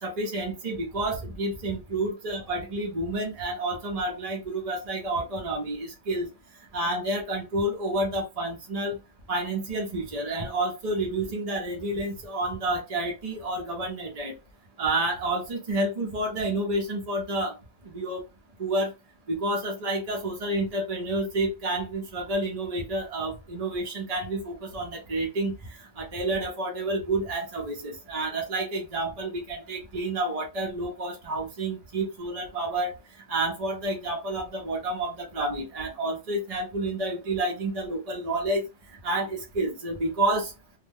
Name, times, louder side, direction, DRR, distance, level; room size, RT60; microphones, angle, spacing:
voice 1, 0.0-6.3 6.7-9.0 9.3-14.3 14.8-17.6 17.8-18.2 18.6-18.9 19.3-32.9 33.3-38.6 39.0-40.5, right 2 dB, 40° right, 0 dB, 0.6 m, -29 dB
2.5 x 2.1 x 3.4 m, 0.25 s
omnidirectional pair, 1.4 m